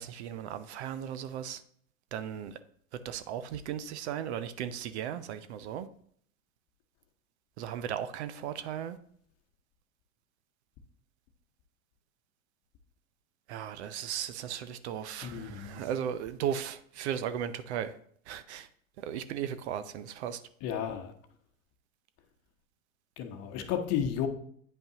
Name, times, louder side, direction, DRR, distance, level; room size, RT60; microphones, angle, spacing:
voice 1, 0.0-1.6 2.1-2.6 2.9-5.9 7.6-9.0 13.5-17.9 18.3-18.7 19.0-20.4, right 9 dB, 55° right, 12 dB, 0.6 m, -36 dB
voice 2, 15.2-15.8 20.6-21.1 23.2-24.3, left 9 dB, 35° left, 6 dB, 1.0 m, -33 dB
9.1 x 5.3 x 2.9 m, 0.62 s
hypercardioid pair, 100°, 41 cm